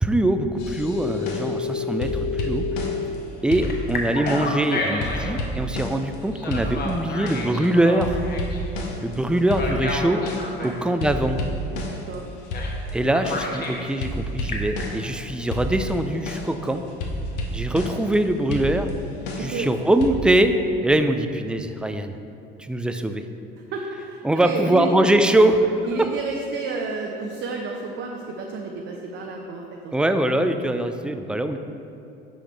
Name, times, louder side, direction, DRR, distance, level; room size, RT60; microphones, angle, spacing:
voice 1, 0.0-2.9 3.4-8.2 9.0-10.2 10.6-11.4 12.9-16.8 17.5-18.9 19.4-20.6 20.8-22.2 22.6-23.2 24.2-26.1 29.9-31.6, right 1 dB, 5° right, 7 dB, 0.3 m, -22 dB
sound 1, 0.6-1.7 2.0-3.2 3.5-4.7 5.0-6.2 6.5-7.6 8.0-10.6 11.0-15.2 15.5-18.2 18.5-20.1, left 1 dB, 60° left, 1.1 m, -31 dB
Telephone, 0.8-3.1 3.6-5.4 6.3-8.6 9.4-10.8 12.5-12.8 13.1-13.9 14.3-14.8, left 4 dB, 30° left, 1.3 m, -30 dB
voice 2, 11.9-12.3 19.4-20.0 23.7-24.9 25.8-30.2, right 4 dB, 40° right, 0 dB, 0.8 m, -31 dB
9.4 x 6.2 x 3.3 m, 2.6 s
figure-of-eight pair, 65°, 30 cm